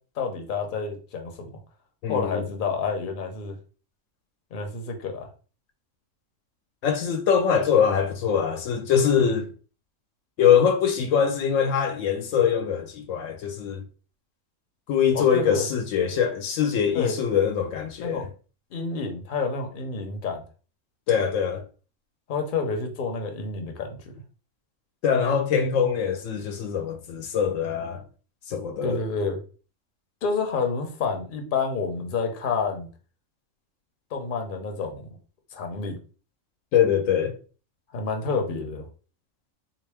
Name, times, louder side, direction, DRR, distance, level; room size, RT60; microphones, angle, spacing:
voice 1, 0.2-1.5 2.1-3.5 4.5-5.3 15.1-15.6 16.9-17.2 18.0-18.3 18.7-20.4 22.3-24.0 28.8-29.4 30.2-32.9 34.1-35.0 35.5-36.0 37.9-38.8, left 4 dB, 45° left, 0.8 m, -29 dB
voice 2, 2.0-2.4 6.8-9.5 10.4-13.8 14.9-18.3 21.1-21.6 25.0-28.0 28.5-29.0 36.7-37.3, left 7 dB, 75° left, 0.9 m, -23 dB
3.4 x 2.5 x 3.4 m
omnidirectional pair, 1.4 m